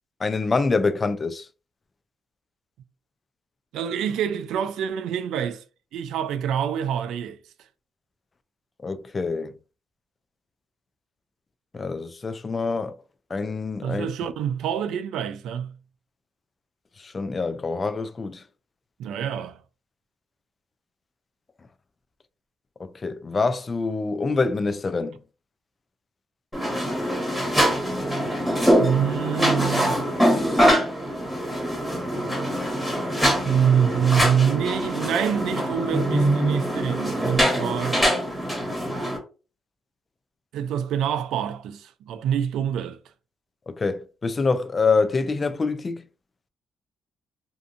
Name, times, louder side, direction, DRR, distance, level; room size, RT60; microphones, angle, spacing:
voice 1, 0.2-1.5 8.8-9.6 11.7-12.9 13.3-14.1 17.0-18.4 22.8-25.2 43.7-46.0, left 4 dB, 30° left, 0.3 m, -25 dB
voice 2, 3.7-5.6 5.9-7.4 13.8-15.8 19.0-19.6 28.8-30.1 32.2-32.5 33.4-38.0 40.5-43.0, right 8 dB, 85° right, 0.3 m, -26 dB
sound 1, 26.5-39.2, equal, 5° left, 1.2 m, -23 dB
2.6 x 2.5 x 2.4 m
cardioid pair, 90°, 0 cm